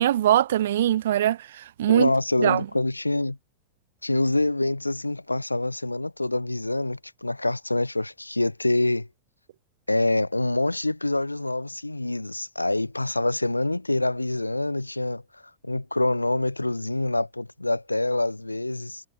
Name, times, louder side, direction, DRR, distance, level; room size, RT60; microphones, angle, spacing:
voice 1, 0.0-2.1 2.4-2.7, right 12 dB, 60° right, 0.3 m, -22 dB
voice 2, 1.9-3.4 4.0-9.1 9.9-15.2 15.6-19.0, left 2 dB, 85° left, 1.1 m, -26 dB
figure-of-eight pair, 90°, 0 cm